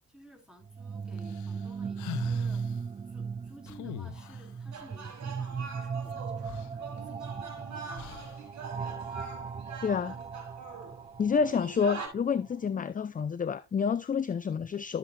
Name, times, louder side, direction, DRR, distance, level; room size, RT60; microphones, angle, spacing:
voice 1, 0.1-2.6 3.1-8.3 8.7-9.3 9.9-10.2 10.7-11.0, equal, ahead, 3.3 m, -55 dB
sound 1, 0.6-12.5, right 5 dB, 20° right, 0.4 m, -38 dB
sound 2, 1.2-2.8 3.7-4.6 6.1-6.2 6.4-7.4 8.0-8.5, left 14 dB, 75° left, 0.7 m, -43 dB
sound 3, 4.7-12.1, right 5 dB, 65° right, 5.3 m, -44 dB
voice 2, 9.8-10.1 11.2-15.0, left 6 dB, 25° left, 0.6 m, -29 dB
13.0 x 7.5 x 2.3 m
cardioid pair, 90°, 30 cm